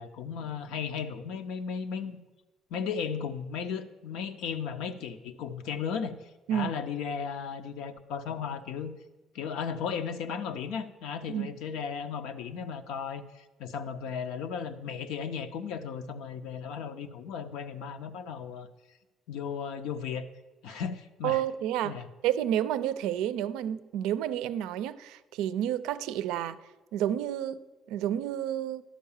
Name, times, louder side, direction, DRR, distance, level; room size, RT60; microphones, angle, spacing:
voice 1, 0.0-2.2 2.7-8.9 9.3-18.7 19.3-20.2 20.6-21.4 21.8-22.1, left 6 dB, 85° left, 8 dB, 0.6 m, -35 dB
voice 2, 21.2-26.6 26.9-28.8, right 11 dB, 90° right, 14 dB, 0.4 m, -30 dB
11.5 x 4.7 x 7.1 m, 1.1 s
cardioid pair, 110°, 0 cm